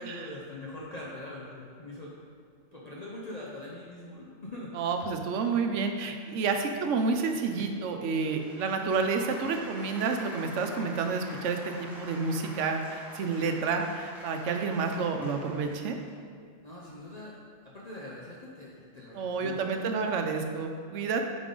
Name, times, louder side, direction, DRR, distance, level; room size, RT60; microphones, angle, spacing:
voice 1, 0.0-2.1 2.7-4.7 16.6-17.3 17.6-19.9, left 1 dB, 40° left, -5 dB, 0.8 m, -42 dB
voice 2, 4.7-16.0 19.1-21.2, right 4 dB, 85° right, 5 dB, 1.0 m, -29 dB
sound 1, 8.1-16.1, equal, ahead, 1.0 m, -46 dB
8.5 x 4.1 x 3.8 m, 2.2 s
omnidirectional pair, 1.2 m